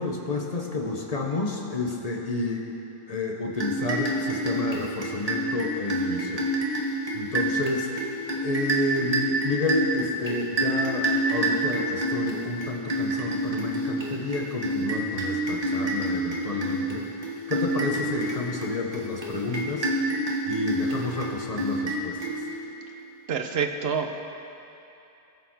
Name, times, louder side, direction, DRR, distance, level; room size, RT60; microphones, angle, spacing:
voice 1, 0.0-2.7 3.1-6.5 7.1-7.9 8.4-17.1 17.5-19.9 20.4-22.4, left 2 dB, 40° left, 0 dB, 1.1 m, -30 dB
sound 1, 3.6-22.8, right 1 dB, 35° right, 1.4 m, -28 dB
voice 2, 23.3-24.2, right 6 dB, 75° right, 6 dB, 1.0 m, -27 dB
19.0 x 6.8 x 4.7 m, 2.9 s
omnidirectional pair, 1.0 m